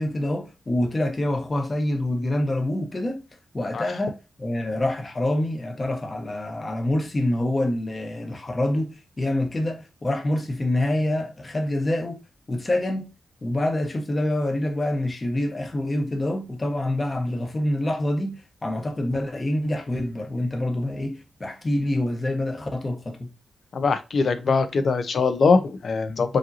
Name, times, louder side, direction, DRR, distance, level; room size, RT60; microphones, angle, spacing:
voice 1, 0.0-3.2 3.5-12.2 12.5-13.1 13.4-23.3, left 1 dB, 25° left, 1.0 m, -26 dB
voice 2, 23.7-26.4, left 4 dB, 55° left, 0.6 m, -22 dB
5.0 x 2.9 x 2.7 m
wide cardioid pair, 145°, 0 cm